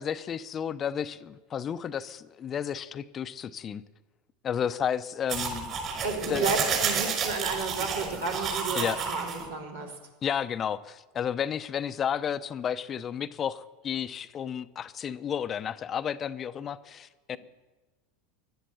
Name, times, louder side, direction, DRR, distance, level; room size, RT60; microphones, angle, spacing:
voice 1, 0.0-3.8 4.4-6.4 8.7-9.0 10.2-17.4, left 8 dB, 35° left, 14 dB, 0.6 m, -32 dB
sound 1, 5.3-9.4, right 6 dB, 40° right, 5.4 m, -30 dB
voice 2, 6.0-9.9, right 3 dB, 85° right, -1 dB, 3.4 m, -32 dB
16.0 x 11.0 x 6.9 m, 1.2 s
hypercardioid pair, 85°, 0 cm